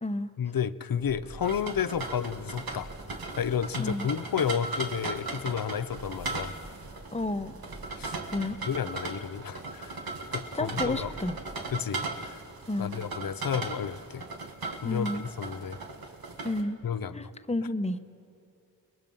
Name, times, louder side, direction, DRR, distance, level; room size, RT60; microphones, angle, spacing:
voice 1, 0.4-2.9 3.4-6.5 7.9-8.2 8.7-11.1 11.7-12.4 12.8-14.2 14.8-15.8 16.8-17.3, left 8 dB, 75° left, 15 dB, 0.7 m, -32 dB
sound 1, 0.9-11.8, right 2 dB, 55° right, 3.1 m, -49 dB
sound 2, 1.4-16.6, right 3 dB, 85° right, 1.6 m, -38 dB
voice 2, 7.1-7.5 8.3-8.5 10.5-11.4 12.7-12.9 14.8-15.3 16.4-16.8 17.1-18.0, left 2 dB, 20° left, 9 dB, 1.0 m, -31 dB
30.0 x 20.5 x 5.5 m, 2.5 s
wide cardioid pair, 75°, 35 cm